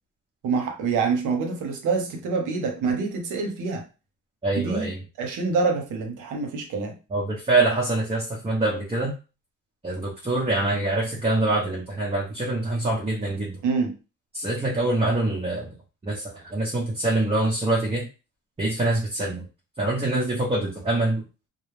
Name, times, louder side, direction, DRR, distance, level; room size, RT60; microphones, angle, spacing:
voice 1, 0.4-3.8 4.5-4.9 5.2-6.9 13.6-13.9, right 4 dB, 80° right, 4 dB, 0.8 m, -26 dB
voice 2, 4.4-5.0 7.1-9.1 9.8-13.6 14.3-15.7 16.0-18.1 18.6-19.4 19.8-21.2, right 2 dB, 20° right, -4 dB, 0.7 m, -25 dB
2.3 x 2.0 x 3.1 m, 0.31 s
cardioid pair, 90°, 30 cm